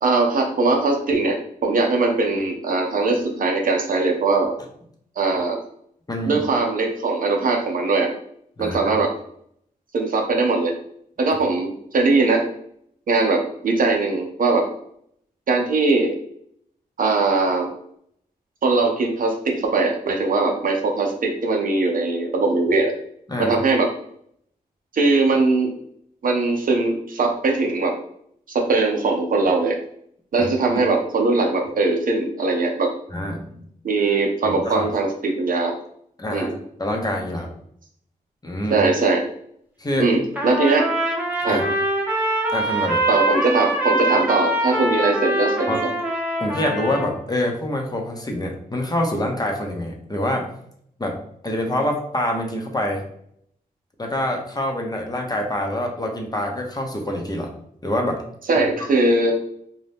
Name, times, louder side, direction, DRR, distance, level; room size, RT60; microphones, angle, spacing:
voice 1, 0.0-4.5 5.2-5.6 6.2-8.1 8.6-9.1 9.9-10.7 11.2-12.4 13.1-14.7 15.5-16.1 17.0-17.7 18.6-22.9 23.4-23.9 24.9-25.7 26.2-27.9 28.5-29.8 30.3-32.9 33.8-35.7 36.3-36.5 38.7-39.2 40.0-40.9 41.4-41.6 43.1-45.9 58.5-59.3, right 3 dB, 60° right, 2 dB, 0.6 m, -20 dB
voice 2, 6.1-6.4 8.6-8.9 23.3-23.6 30.4-30.8 33.1-33.5 34.4-34.9 36.2-36.5 36.8-37.5 38.4-38.8 39.8-40.1 41.5-41.6 42.5-43.0 45.7-45.8 46.4-50.5 51.0-51.2 51.4-53.0 54.0-57.5 57.8-58.2 58.6-58.7, left 1 dB, 25° left, 1 dB, 0.8 m, -26 dB
Trumpet, 40.3-47.1, right 1 dB, 10° right, 0.9 m, -23 dB
2.7 x 2.2 x 3.4 m, 0.68 s
cardioid pair, 55°, 16 cm